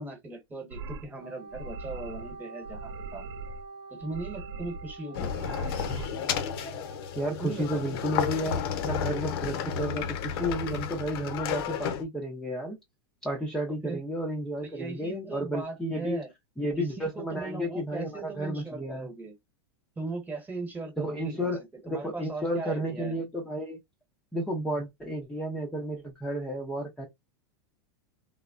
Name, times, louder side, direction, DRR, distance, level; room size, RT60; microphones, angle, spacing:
voice 1, 0.0-3.2 3.9-5.3 7.4-7.8 9.5-9.7 13.8-14.0 14.6-16.3 16.7-19.3 20.0-21.5 21.9-23.2, right 3 dB, 15° right, 1.1 m, -38 dB
sound 1, 0.7-1.1 1.5-2.4 2.6-3.6 4.0-5.0 5.2-6.1, right 3 dB, 85° right, 0.4 m, -40 dB
Wind instrument woodwind instrument, 1.2-8.9, right 3 dB, 55° right, 0.9 m, -47 dB
sound 2, 5.1-12.0, left 7 dB, 60° left, 0.7 m, -32 dB
voice 2, 7.2-12.8 13.2-16.2 16.6-19.1 21.0-23.8 24.3-27.1, equal, 5° left, 0.6 m, -32 dB
3.3 x 2.0 x 2.4 m
hypercardioid pair, 130°, 14 cm